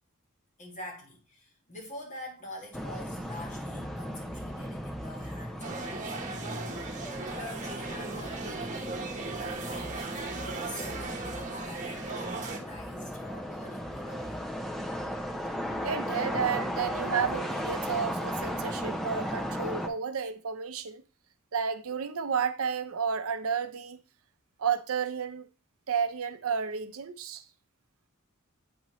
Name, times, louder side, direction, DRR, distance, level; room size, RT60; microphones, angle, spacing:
voice 1, 0.6-6.8 7.3-8.7 9.3-10.9 11.2-14.4, left 1 dB, 35° left, 1.7 m, -46 dB
sound 1, 2.7-19.9, equal, ahead, 0.6 m, -36 dB
sound 2, 5.6-12.6, right 3 dB, 35° right, 1.1 m, -37 dB
sound 3, 6.9-12.2, left 2 dB, 75° left, 2.3 m, -62 dB
voice 2, 15.8-21.0 21.5-24.0 24.6-25.5 25.9-27.4, right 6 dB, 70° right, 0.6 m, -31 dB
8.5 x 4.0 x 3.0 m
head